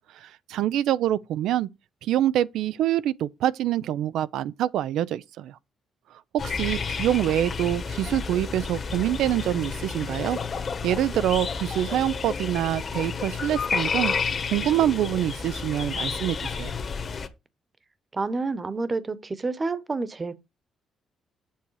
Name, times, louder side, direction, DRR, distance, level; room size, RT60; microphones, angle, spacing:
voice 1, 0.2-1.7 2.0-5.5 6.4-10.4 10.8-14.1 14.5-16.7, right 12 dB, 85° right, 0.5 m, -25 dB
sound 1, 6.4-17.3, left 5 dB, 45° left, 1.4 m, -31 dB
voice 2, 18.1-20.4, right 3 dB, 30° right, 1.1 m, -29 dB
7.5 x 6.9 x 4.7 m
cardioid pair, 90°, 0 cm